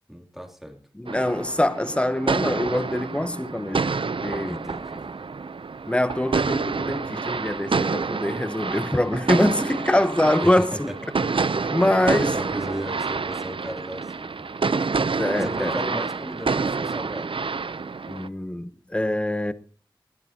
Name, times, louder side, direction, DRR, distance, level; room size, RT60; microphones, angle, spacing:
voice 1, 0.1-0.8 4.4-5.1 10.4-11.0 11.6-11.7 12.1-15.0 15.4-17.3, equal, 5° right, 2.9 m, -36 dB
voice 2, 1.0-4.6 5.9-10.9 11.7-12.3 15.2-15.7 18.1-19.5, left 1 dB, 15° left, 1.0 m, -24 dB
sound 1, 1.1-18.3, right 4 dB, 80° right, 0.6 m, -28 dB
21.5 x 16.0 x 2.9 m
wide cardioid pair, 70°, 9 cm